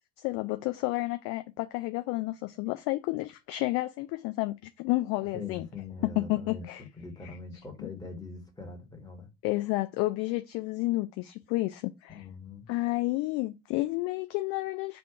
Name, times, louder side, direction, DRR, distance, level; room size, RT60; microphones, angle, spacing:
voice 1, 0.2-5.7 6.0-6.8 7.2-7.4 7.8-7.9 9.4-12.3 12.7-15.0, left 20 dB, 35° left, 0.4 m, -31 dB
voice 2, 5.3-6.7 7.0-9.3 12.1-12.7, left 4 dB, 10° left, 1.4 m, -42 dB
3.4 x 2.6 x 4.5 m
figure-of-eight pair, 75°, 45 cm